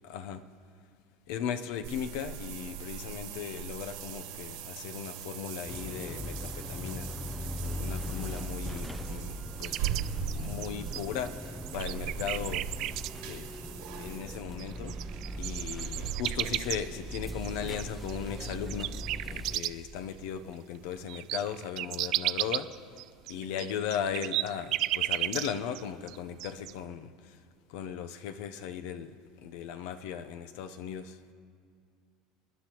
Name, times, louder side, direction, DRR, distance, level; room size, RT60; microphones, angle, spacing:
voice 1, 0.0-0.4 1.3-7.2 7.6-9.9 10.4-12.9 13.2-15.0 15.4-19.0 19.3-22.7 23.3-27.4 27.7-31.3, left 8 dB, 75° left, 10 dB, 0.7 m, -37 dB
sound 1, 1.8-20.5 20.8-20.9 21.4-21.5, right 8 dB, 85° right, 2.1 m, -41 dB
sound 2, 5.7-19.6, equal, 5° left, 0.5 m, -40 dB
sound 3, 9.6-11.3 11.7-13.1 14.3-14.4 14.6-20.0 20.3-20.4 20.7-25.8 26.1-26.7, right 16 dB, 55° right, 0.3 m, -33 dB
28.5 x 10.0 x 3.0 m, 2.3 s
supercardioid pair, 130°, 0 cm